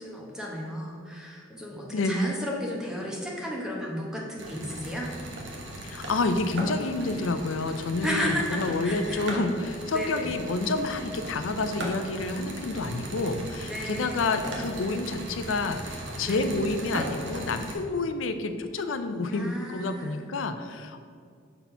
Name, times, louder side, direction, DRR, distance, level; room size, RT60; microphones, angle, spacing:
voice 1, 0.0-5.1 8.0-9.4 9.9-10.3 13.6-14.3 16.2-16.5 19.3-20.2, left 1 dB, 5° right, -3 dB, 0.9 m, -34 dB
voice 2, 1.9-2.3 5.8-21.0, left 3 dB, 80° left, 9 dB, 0.5 m, -29 dB
sound 1, 4.4-17.7, right 1 dB, 65° right, 1.1 m, -38 dB
5.7 x 4.2 x 5.5 m, 2.3 s
head